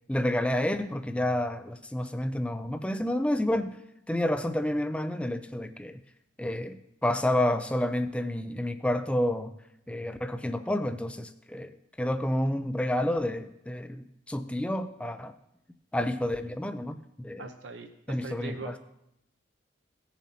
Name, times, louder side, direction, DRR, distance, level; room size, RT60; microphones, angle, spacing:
voice 1, 0.1-3.7 4.1-6.0 6.4-9.5 9.9-15.3 15.9-17.5 18.1-18.8, left 1 dB, 5° left, 9 dB, 0.4 m, -29 dB
voice 2, 17.4-18.8, right 3 dB, 80° right, 5 dB, 0.8 m, -40 dB
18.0 x 7.3 x 2.8 m, 0.81 s
head